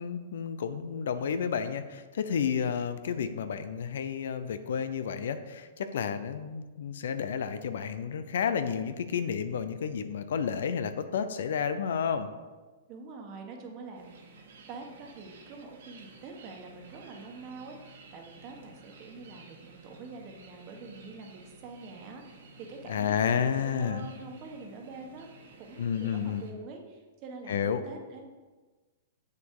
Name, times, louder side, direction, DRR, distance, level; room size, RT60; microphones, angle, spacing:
voice 1, 0.0-12.3 22.9-24.0 25.8-26.4 27.5-27.8, left 7 dB, 75° left, 11 dB, 0.7 m, -31 dB
voice 2, 12.9-28.3, right 4 dB, 35° right, 2 dB, 1.4 m, -45 dB
sound 1, 13.9-26.5, right 3 dB, 75° right, 1.8 m, -53 dB
7.4 x 6.8 x 4.8 m, 1.3 s
hypercardioid pair, 155°, 0 cm